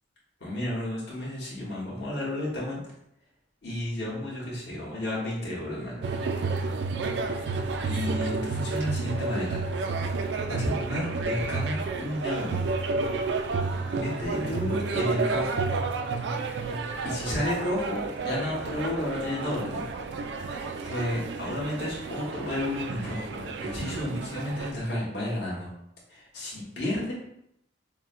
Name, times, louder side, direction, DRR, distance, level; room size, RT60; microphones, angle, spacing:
voice 1, 0.4-2.8 3.6-6.1 7.3-9.6 10.5-12.7 13.9-15.7 16.6-16.8 17.0-19.8 20.3-20.5 20.8-25.7 26.1-27.1, left 1 dB, 65° left, -5 dB, 1.4 m, -32 dB
sound 1, 6.0-24.7, right 3 dB, 70° right, 0.4 m, -31 dB
6.2 x 2.1 x 2.5 m, 0.77 s
head